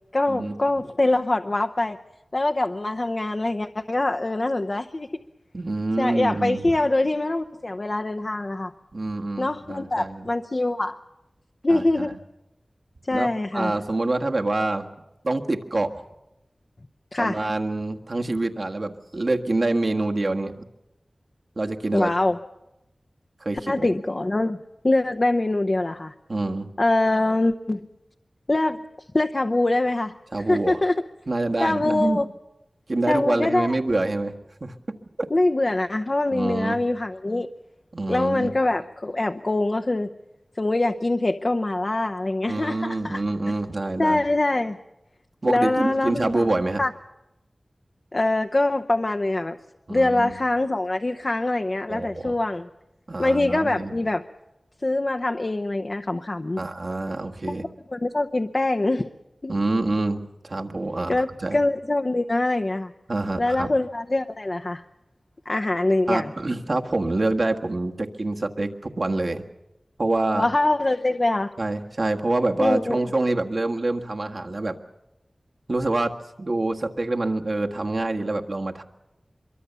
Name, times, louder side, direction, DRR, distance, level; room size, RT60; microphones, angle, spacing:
voice 1, 0.1-2.0 2.3-5.1 6.0-8.7 9.4-11.0 11.6-12.1 13.1-13.7 17.1-17.5 21.9-22.4 23.7-24.6 24.8-26.1 26.8-27.9 28.5-28.8 29.1-30.2 30.5-31.0 31.6-32.3 33.1-33.8 35.3-37.5 38.1-40.1 40.6-43.2 44.0-44.8 45.5-46.5 46.8-46.9 48.1-49.6 49.9-52.7 53.2-54.2 54.8-56.6 57.9-59.1 59.4-59.5 61.1-62.9 63.4-64.8 65.5-66.3 70.3-71.5 72.6-73.0, left 2 dB, 45° left, 6 dB, 0.8 m, -24 dB
voice 2, 5.5-6.6 8.9-10.3 11.7-12.2 13.1-14.9 15.2-16.0 17.2-20.6 21.5-22.1 23.4-23.9 26.3-26.7 30.3-30.8 31.3-32.2 32.9-34.3 34.6-34.7 35.2-35.3 36.3-36.8 37.9-38.5 42.5-44.2 45.4-46.8 49.9-50.4 51.9-52.4 53.1-53.9 56.6-57.7 59.5-61.6 63.1-63.7 66.1-69.4 70.0-70.5 71.6-74.8 75.7-76.1 76.4-78.8, right 2 dB, 55° right, 4 dB, 1.6 m, -26 dB
24.5 x 23.0 x 7.0 m, 0.93 s
wide cardioid pair, 70°, 0 cm